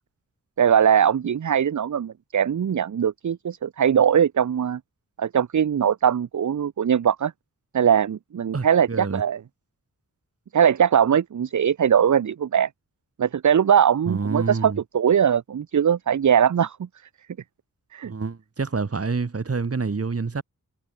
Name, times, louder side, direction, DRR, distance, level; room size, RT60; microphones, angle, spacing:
voice 1, 0.6-4.8 5.2-7.3 7.7-9.4 10.5-12.7 13.2-16.8 17.9-18.1, right 8 dB, 65° right, 0.9 m, -21 dB
voice 2, 8.5-9.2 14.1-14.8 18.0-20.4, right 4 dB, 45° right, 4.9 m, -27 dB
wide cardioid pair, 130°, 32 cm